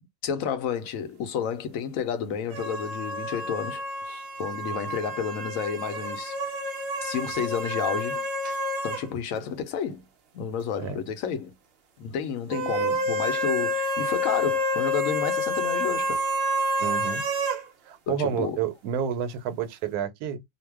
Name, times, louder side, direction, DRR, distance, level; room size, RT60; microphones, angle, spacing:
voice 1, 0.2-6.4 7.0-8.2 8.8-10.1 10.3-11.5 12.0-16.2 18.1-18.6, left 7 dB, 70° left, 0.9 m, -31 dB
sound 1, 2.5-9.1 9.4-9.5 12.5-17.6, equal, 60° right, 0.7 m, -28 dB
voice 2, 16.8-17.2 17.9-20.4, right 8 dB, 80° right, 1.1 m, -30 dB
2.5 x 2.1 x 3.2 m
omnidirectional pair, 1.6 m